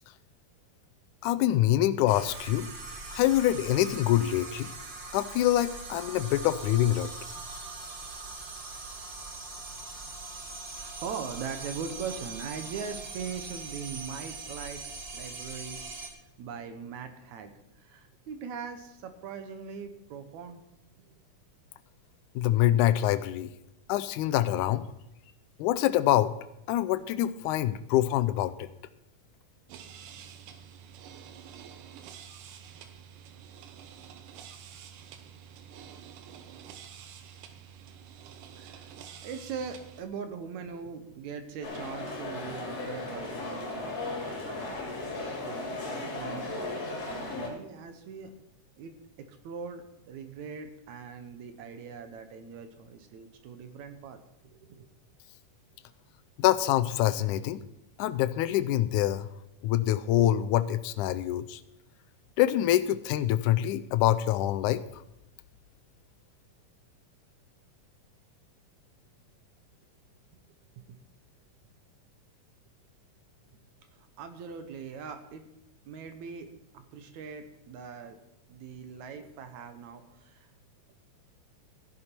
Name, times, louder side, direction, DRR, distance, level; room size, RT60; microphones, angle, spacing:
voice 1, 1.2-2.7 3.1-4.7 5.1-7.1 22.4-23.5 23.9-24.9 25.6-26.4 26.7-28.7 56.4-57.6 58.0-59.3 59.6-61.6 62.4-64.8, left 13 dB, 80° left, 14 dB, 2.0 m, -25 dB
sound 1, 2.1-16.1, right 3 dB, 40° right, 1.4 m, -41 dB
voice 2, 10.7-14.9 15.1-20.6 38.6-38.9 39.2-44.7 45.4-46.7 47.2-48.3 48.8-48.9 49.2-54.9 70.8-71.0 73.5-73.6 74.2-75.5 75.9-76.5 76.7-78.2 78.5-80.5, right 6 dB, 70° right, 8 dB, 2.1 m, -41 dB
sound 2, 29.7-40.0, right 8 dB, 85° right, 2.5 m, -48 dB
sound 3, 41.6-47.5, left 2 dB, 50° left, 4.2 m, -36 dB
14.0 x 11.0 x 4.4 m, 0.84 s
omnidirectional pair, 3.7 m